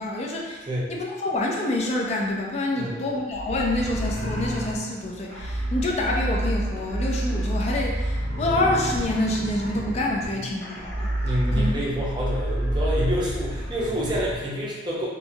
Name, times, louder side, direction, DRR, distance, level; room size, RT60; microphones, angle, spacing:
voice 1, 0.0-11.1 11.5-11.8, left 1 dB, 35° left, -1 dB, 0.4 m, -27 dB
voice 2, 2.8-3.1 10.4-10.5 11.2-15.1, equal, 25° right, -5 dB, 0.5 m, -27 dB
sound 1, 3.3-14.4, right 1 dB, 85° left, 1.5 m, -29 dB
sound 2, 5.2-5.4 6.3-6.4 6.7-7.0 7.5-8.0 8.4-8.6 8.9-9.4 10.2-10.5 11.5-12.4, equal, 80° right, 0.5 m, -40 dB
2.8 x 2.2 x 2.7 m, 1.3 s
head